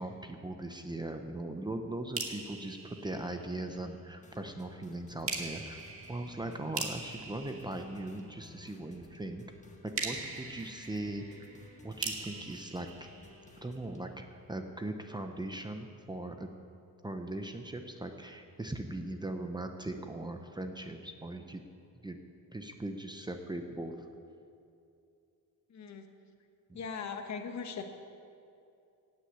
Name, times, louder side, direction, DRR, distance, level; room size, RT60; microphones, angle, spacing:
voice 1, 0.0-5.8 6.1-9.4 9.8-11.5 11.8-13.1 13.6-16.5 17.0-21.6 22.0-22.2 22.5-23.9, right 2 dB, 15° right, 5 dB, 0.8 m, -39 dB
sound 1, 2.1-3.9 5.3-8.6 9.9-13.9, right 4 dB, 40° right, 1.8 m, -42 dB
sound 2, 4.2-14.1, left 2 dB, 20° left, 1.6 m, -56 dB
voice 2, 25.7-26.0 26.7-27.8, left 6 dB, 55° left, 5 dB, 1.3 m, -39 dB
17.5 x 6.3 x 8.3 m, 2.6 s
cardioid pair, 120°, 34 cm